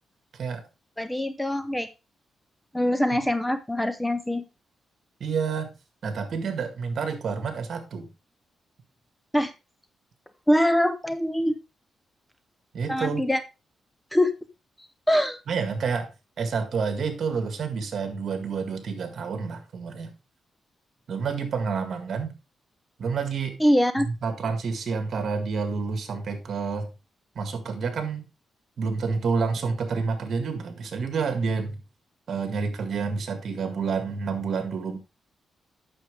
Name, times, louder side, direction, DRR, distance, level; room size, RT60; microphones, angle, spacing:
voice 1, 1.0-1.9 2.7-4.4 9.3-9.5 10.5-11.6 12.9-13.4 14.1-14.3 15.1-15.4 23.6-24.1, equal, 5° left, 12 dB, 0.7 m, -23 dB
voice 2, 5.2-5.7 6.0-8.1 12.7-13.3 15.5-16.1 16.4-20.1 21.1-22.3 23.0-23.6 24.1-26.9 27.4-28.3 28.8-31.8 32.3-35.0, right 5 dB, 60° right, 8 dB, 1.8 m, -29 dB
9.0 x 6.6 x 3.4 m, 0.27 s
cardioid pair, 100°, 0 cm